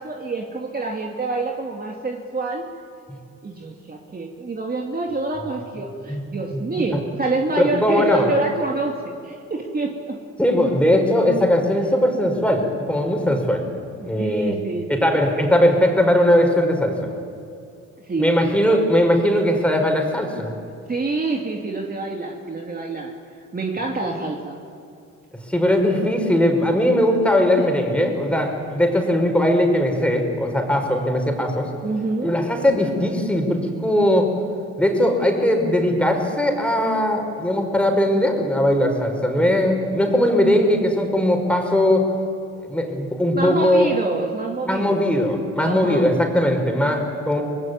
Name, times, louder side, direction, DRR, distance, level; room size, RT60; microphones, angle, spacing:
voice 1, 0.0-2.7 3.4-10.2 14.0-15.2 18.0-18.6 20.9-23.1 23.5-24.6 27.6-27.7 31.8-32.3 43.3-45.1 45.6-46.1, right 3 dB, 30° right, 0 dB, 2.5 m, -27 dB
voice 2, 7.6-8.3 10.4-13.7 14.1-14.6 14.9-17.1 18.2-20.5 25.5-31.7 32.2-34.3 34.8-42.1 42.6-43.9 44.6-47.4, left 1 dB, 5° left, 3 dB, 5.3 m, -19 dB
25.0 x 20.0 x 9.6 m, 2.5 s
cardioid pair, 90°, 30 cm